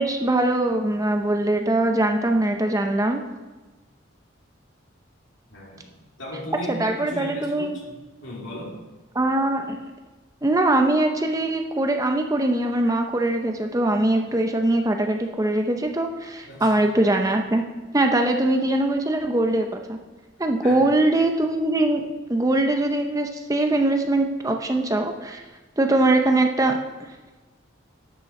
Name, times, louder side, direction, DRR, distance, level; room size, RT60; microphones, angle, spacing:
voice 1, 0.0-3.2 6.7-7.8 9.2-9.8 10.4-17.6 17.9-20.0 20.4-22.0 22.3-25.4 25.8-26.8, right 2 dB, 15° right, 4 dB, 0.6 m, -22 dB
voice 2, 5.5-5.9 6.2-7.9 8.2-8.8 16.4-16.7 20.6-21.0, left 1 dB, 65° left, -3 dB, 3.0 m, -36 dB
12.0 x 9.0 x 4.3 m, 1.2 s
head